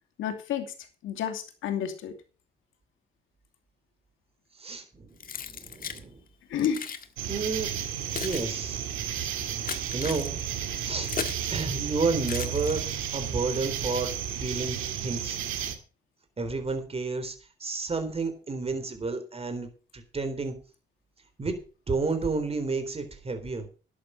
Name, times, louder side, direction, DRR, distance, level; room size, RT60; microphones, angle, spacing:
voice 1, 0.2-0.7 1.0-2.1 6.5-6.8, left 9 dB, 85° left, 6 dB, 2.7 m, -30 dB
voice 2, 4.6-6.1 7.3-7.7 8.2-8.9 9.9-11.1 11.5-14.8 15.0-15.4 16.4-20.5 21.4-21.6 21.9-23.7, right 4 dB, 30° right, 8 dB, 3.9 m, -31 dB
Keys jangling, 5.2-6.0 6.6-7.1 7.8-11.5 12.2-13.2, left 6 dB, 45° left, 1.6 m, -37 dB
sound 1, 7.2-15.8, right 9 dB, 90° right, 2.1 m, -33 dB
11.5 x 9.8 x 5.8 m, 0.36 s
cardioid pair, 90°, 20 cm